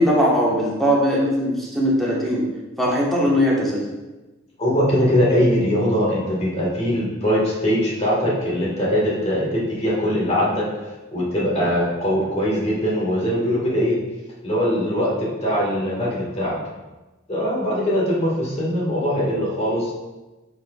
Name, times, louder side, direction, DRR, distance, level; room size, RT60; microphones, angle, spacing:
voice 1, 0.0-2.4 2.8-3.8, equal, ahead, -6 dB, 1.4 m, -19 dB
voice 2, 4.6-10.7 11.1-14.0 14.4-16.6 17.3-19.9, equal, 30° left, -5 dB, 1.7 m, -21 dB
8.6 x 4.5 x 2.4 m, 1.1 s
head